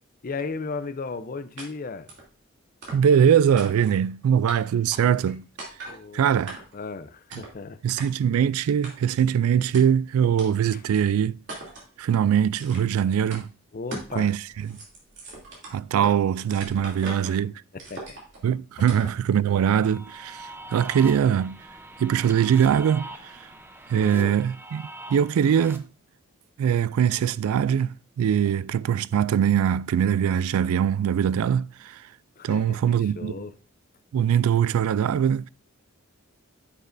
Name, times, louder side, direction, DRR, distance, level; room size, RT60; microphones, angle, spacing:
voice 1, 0.2-2.1 5.9-6.4 6.7-7.8 10.7-10.8 13.7-14.3 16.8-16.9 17.7-18.2 18.8-18.9 23.9-24.4 32.4-33.5, left 4 dB, 40° left, 0.5 m, -35 dB
sound 1, 1.6-1.7 2.1-2.3 2.8-3.2 3.6-4.0 4.5-4.6 4.9-5.3 5.6-6.0 6.5-6.8 7.3-7.6 8.0-8.1 8.8-9.2 9.7-9.8 10.4-10.5 10.9-11.0 11.5-11.9 12.5-13.0 13.3-13.4 13.9-14.2 14.5-16.2 16.5-17.4 17.8-18.4 18.9-19.2, right 2 dB, 55° right, 2.8 m, -40 dB
voice 2, 2.9-5.4 6.1-6.6 7.3-7.4 7.8-11.4 12.0-13.5 14.2-14.8 15.7-17.5 18.4-21.6 22.0-23.3 23.9-25.8 26.6-32.0 32.4-33.3 34.1-35.5, right 8 dB, 80° right, 0.3 m, -22 dB
sound 2, 19.5-25.8, right 2 dB, 10° right, 0.6 m, -43 dB
9.7 x 6.5 x 2.6 m
head